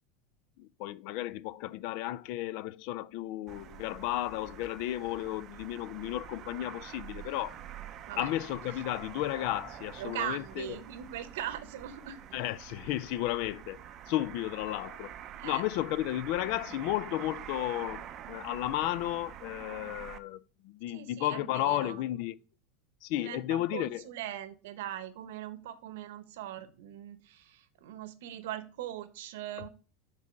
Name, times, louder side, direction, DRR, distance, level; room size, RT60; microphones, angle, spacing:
voice 1, 0.6-7.6 8.2-10.7 12.3-15.1 15.4-22.4 23.0-24.0, left 15 dB, 60° left, 0.3 m, -33 dB
sound 1, 3.5-20.2, right 10 dB, 35° right, 0.5 m, -46 dB
voice 2, 10.0-12.2 15.4-15.6 20.9-22.0 23.1-29.7, right 11 dB, 80° right, 0.8 m, -40 dB
5.2 x 4.0 x 5.8 m
supercardioid pair, 140°, 0 cm